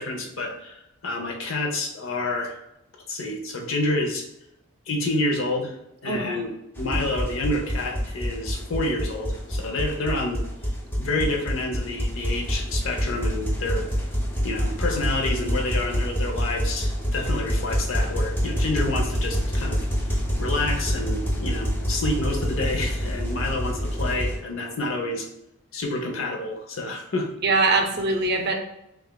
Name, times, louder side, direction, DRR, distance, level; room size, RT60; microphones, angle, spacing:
voice 1, 0.0-2.6 3.1-4.2 4.9-5.7 6.0-6.5 6.8-10.4 11.0-13.9 14.4-19.9 20.4-25.3 25.7-27.3, left 2 dB, 65° left, 2 dB, 0.7 m, -28 dB
voice 2, 6.1-6.4 11.0-11.1 27.4-28.5, right 3 dB, 50° right, 4 dB, 0.5 m, -23 dB
sound 1, 6.8-24.4, equal, 10° left, 0.7 m, -27 dB
6.1 x 2.4 x 2.2 m, 0.86 s
head